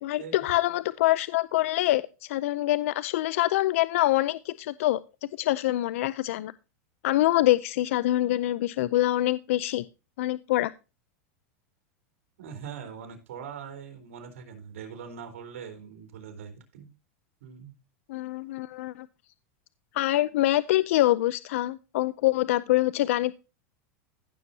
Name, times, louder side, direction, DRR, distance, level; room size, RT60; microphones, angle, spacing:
voice 1, 0.0-5.0 5.4-6.5 7.0-9.8 10.2-10.7 18.1-19.1 19.9-23.3, left 16 dB, 75° left, 18 dB, 0.5 m, -25 dB
voice 2, 12.4-16.9 17.4-17.7, right 7 dB, 85° right, 6 dB, 3.7 m, -42 dB
15.5 x 7.0 x 2.7 m, 0.30 s
supercardioid pair, 135°, 7 cm